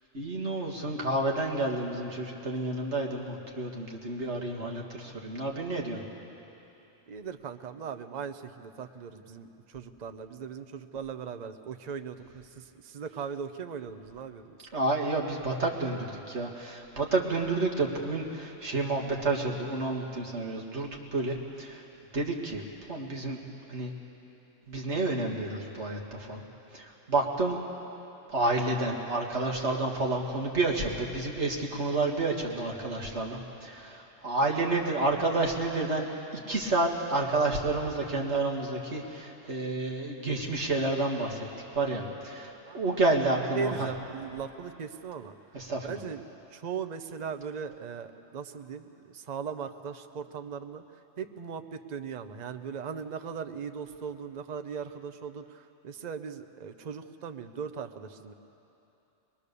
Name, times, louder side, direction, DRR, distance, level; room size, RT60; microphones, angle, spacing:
voice 1, 0.1-6.0 14.7-21.8 22.1-23.4 23.7-23.9 24.7-26.4 26.7-27.6 28.3-36.1 36.3-41.5 41.7-43.9 45.5-45.9, right 2 dB, 60° right, -1 dB, 2.2 m, -30 dB
voice 2, 7.1-14.7 42.7-43.0 43.6-45.3 45.8-46.2 46.5-50.8 51.2-58.3, right 6 dB, 40° right, 8 dB, 0.8 m, -39 dB
22.5 x 22.0 x 6.9 m, 3.0 s
omnidirectional pair, 1.3 m